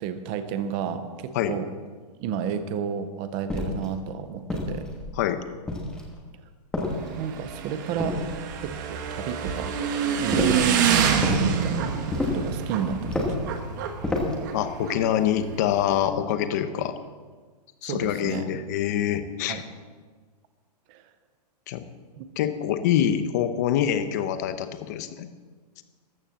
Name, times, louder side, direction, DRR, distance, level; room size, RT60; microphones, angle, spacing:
voice 1, 0.0-1.7 2.2-4.9 7.2-8.2 8.6-9.8 10.2-13.5 17.8-18.5 19.5-19.6 20.9-21.0 22.2-22.3, right 7 dB, 10° right, 10 dB, 0.4 m, -32 dB
sound 1, 3.5-3.9 4.5-5.1 5.7-6.2 6.7-7.4 8.0-8.7 10.3-10.7 11.2-11.5 12.1-12.5 13.1-13.5 14.0-14.5, left 2 dB, 5° left, 1.4 m, -29 dB
Motorcycle / Engine, 6.8-16.1, right 7 dB, 30° right, 1.2 m, -27 dB
voice 2, 14.5-16.9 17.8-19.6 21.7-21.8 22.4-25.3, left 10 dB, 25° left, 10 dB, 0.8 m, -25 dB
14.0 x 12.0 x 7.3 m, 1.5 s
hypercardioid pair, 180°, 21 cm